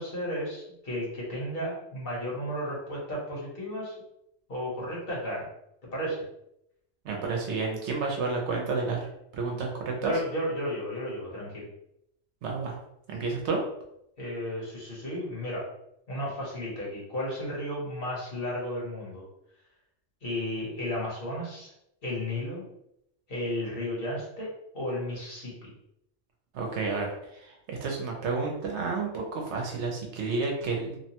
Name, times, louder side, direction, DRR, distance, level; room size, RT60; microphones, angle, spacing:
voice 1, 0.0-3.9 4.5-5.5 5.9-6.2 10.0-11.7 14.2-15.7 16.1-19.2 20.2-21.7 22.0-22.6 23.3-24.5 24.7-25.7, left 1 dB, 50° left, -5 dB, 1.1 m, -33 dB
voice 2, 7.0-9.0 9.3-10.1 12.4-12.7 13.1-13.6 26.5-31.0, right 4 dB, 70° right, 0 dB, 0.9 m, -30 dB
2.9 x 2.1 x 2.8 m, 0.81 s
omnidirectional pair, 1.3 m